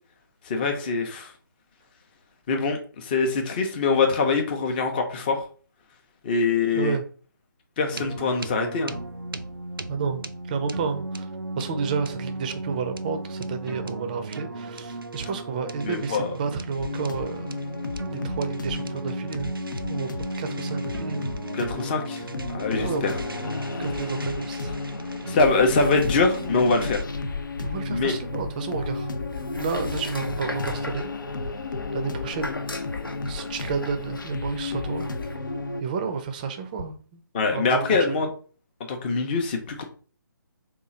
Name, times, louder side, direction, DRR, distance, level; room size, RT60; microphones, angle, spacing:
voice 1, 0.4-1.3 2.5-5.4 6.2-7.0 7.8-9.0 15.8-16.3 21.5-23.2 25.3-27.0 27.9-28.2 37.3-38.3 38.9-39.8, left 4 dB, 25° left, 0.6 m, -24 dB
voice 2, 6.6-7.0 9.9-11.3 11.6-17.6 18.1-19.5 19.8-20.1 20.4-21.2 22.8-23.1 23.8-24.8 27.6-29.1 29.6-31.1 31.9-32.5 33.3-35.1 35.8-37.2 37.5-37.9, right 5 dB, 25° right, 0.5 m, -31 dB
sound 1, 7.9-27.0, right 2 dB, 85° right, 0.4 m, -36 dB
sound 2, 16.8-35.8, left 3 dB, 65° left, 0.5 m, -33 dB
sound 3, 25.4-35.4, left 3 dB, 85° left, 0.9 m, -38 dB
3.7 x 2.4 x 4.2 m
figure-of-eight pair, 145°, 11 cm